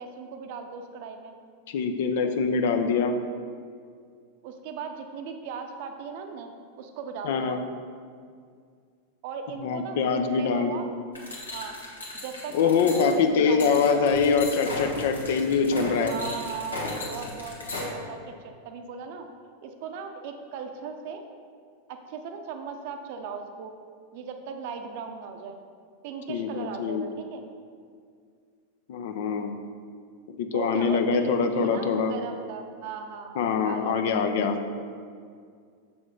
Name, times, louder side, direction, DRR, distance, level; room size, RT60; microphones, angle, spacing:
voice 1, 0.0-1.4 4.4-7.6 9.2-10.9 11.5-14.0 16.0-19.3 19.6-21.2 21.9-23.7 24.1-25.6 26.0-27.4 30.5-34.2, right 6 dB, 50° right, 5 dB, 0.7 m, -38 dB
voice 2, 1.7-3.1 7.2-7.6 9.6-10.8 12.5-16.1 26.3-27.1 28.9-29.5 30.3-32.1 33.4-34.6, left 5 dB, 55° left, 7 dB, 0.5 m, -24 dB
sound 1, 11.1-17.8, left 2 dB, 75° left, 1.3 m, -36 dB
7.0 x 6.0 x 3.8 m, 2.1 s
figure-of-eight pair, 90°, 0 cm